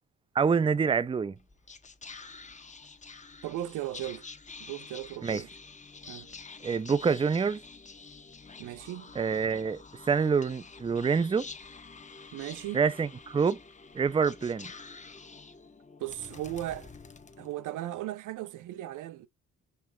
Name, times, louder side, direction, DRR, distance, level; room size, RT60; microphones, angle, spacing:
voice 1, 0.4-1.3 5.2-5.4 6.6-7.6 9.2-9.8 10.1-11.5 12.7-13.6 13.9-14.7, right 5 dB, 15° right, 0.5 m, -26 dB
Whispering, 1.4-17.9, left 4 dB, 25° left, 1.0 m, -48 dB
voice 2, 3.4-4.3 4.6-5.5 6.1-6.3 8.6-9.1 12.3-12.9 16.0-16.9 17.4-19.3, right 14 dB, 85° right, 0.7 m, -37 dB
5.6 x 2.1 x 4.5 m
cardioid pair, 90°, 30 cm